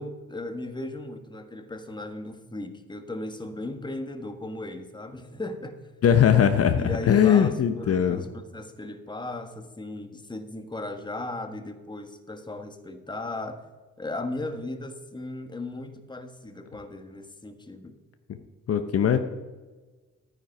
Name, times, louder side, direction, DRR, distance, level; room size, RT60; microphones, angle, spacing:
voice 1, 0.0-5.8 6.8-13.6 14.0-18.0, left 2 dB, 15° left, 7 dB, 1.4 m, -36 dB
voice 2, 6.0-8.2 18.3-18.4 18.7-19.2, left 8 dB, 50° left, 8 dB, 0.9 m, -20 dB
12.0 x 9.6 x 5.5 m, 1.3 s
cardioid pair, 90°, 30 cm